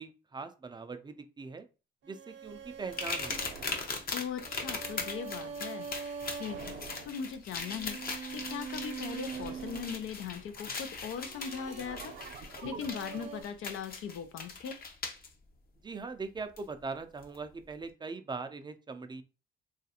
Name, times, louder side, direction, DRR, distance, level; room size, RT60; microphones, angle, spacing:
voice 1, 0.0-1.7 2.1-3.6 15.8-19.2, right 4 dB, 20° right, 8 dB, 0.4 m, -41 dB
sound 1, 2.0-10.5 11.1-13.4, right 6 dB, 65° right, 0.7 m, -43 dB
sound 2, 2.9-15.3 16.6-16.7 17.2-17.4, left 4 dB, 50° left, 0.7 m, -40 dB
voice 2, 4.1-14.8, left 7 dB, 85° left, 9 dB, 0.5 m, -40 dB
3.1 x 2.4 x 2.8 m, 0.31 s
cardioid pair, 90°, 20 cm